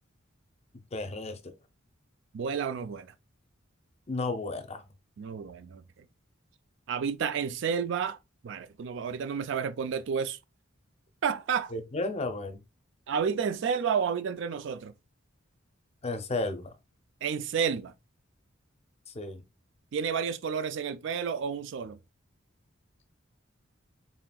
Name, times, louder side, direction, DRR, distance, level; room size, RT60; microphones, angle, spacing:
voice 1, 0.9-1.6 4.1-4.8 11.7-12.6 16.0-16.7 19.1-19.4, left 2 dB, 30° left, 0.5 m, -33 dB
voice 2, 2.3-3.1 5.2-5.8 6.9-8.2 8.4-10.4 11.2-11.7 13.1-14.9 17.2-17.9 19.9-22.0, right 6 dB, 60° right, 0.4 m, -30 dB
4.2 x 3.6 x 2.2 m
head